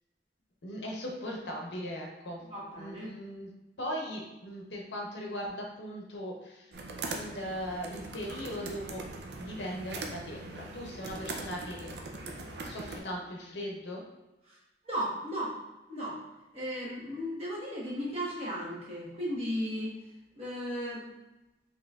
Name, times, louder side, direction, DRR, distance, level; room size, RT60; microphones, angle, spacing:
voice 1, 0.6-2.4 2.8-3.5 3.8-6.7 7.1-9.1 9.4-11.9 12.6-14.0, equal, 75° left, -1 dB, 0.8 m, -39 dB
voice 2, 2.4-3.1 14.5-14.6 14.8-15.5 15.9-16.2 16.5-19.9 20.4-21.1, equal, 35° right, -6 dB, 1.1 m, -35 dB
sound 1, 6.7-13.0, right 3 dB, 70° right, 0.5 m, -41 dB
4.3 x 3.2 x 2.3 m, 1.0 s
head